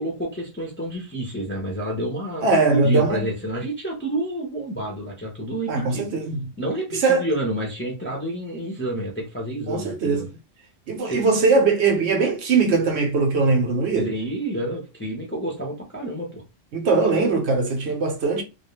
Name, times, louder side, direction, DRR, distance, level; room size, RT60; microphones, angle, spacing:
voice 1, 0.0-6.1 6.6-10.3 11.0-11.2 13.9-16.4, right 1 dB, 15° left, 0.5 m, -29 dB
voice 2, 2.4-3.3 5.7-6.5 6.9-7.3 9.7-10.3 10.9-14.1 16.7-18.4, right 4 dB, 65° right, 0.8 m, -21 dB
2.3 x 2.2 x 3.0 m
omnidirectional pair, 1.3 m